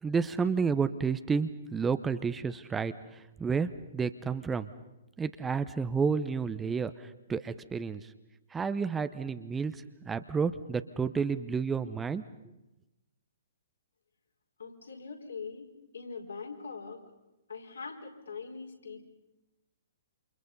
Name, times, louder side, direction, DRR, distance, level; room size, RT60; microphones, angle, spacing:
voice 1, 0.0-4.7 5.2-8.1 8.5-12.2, right 5 dB, 10° right, 12 dB, 0.8 m, -31 dB
voice 2, 14.6-15.7 15.9-17.0 17.5-19.0, left 5 dB, 70° left, 2 dB, 4.5 m, -42 dB
28.5 x 27.5 x 5.4 m, 0.97 s
figure-of-eight pair, 120°, 0 cm